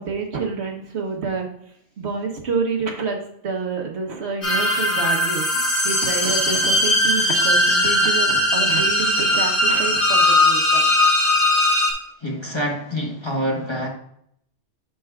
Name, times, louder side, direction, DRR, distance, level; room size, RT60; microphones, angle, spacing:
voice 1, 0.0-1.5 2.0-10.9, right 4 dB, 70° right, 1.3 m, -28 dB
sound 1, 4.4-11.9, left 1 dB, 50° left, 2.2 m, -19 dB
voice 2, 12.2-13.9, equal, 25° left, 1.1 m, -26 dB
8.2 x 6.5 x 2.3 m
omnidirectional pair, 1.2 m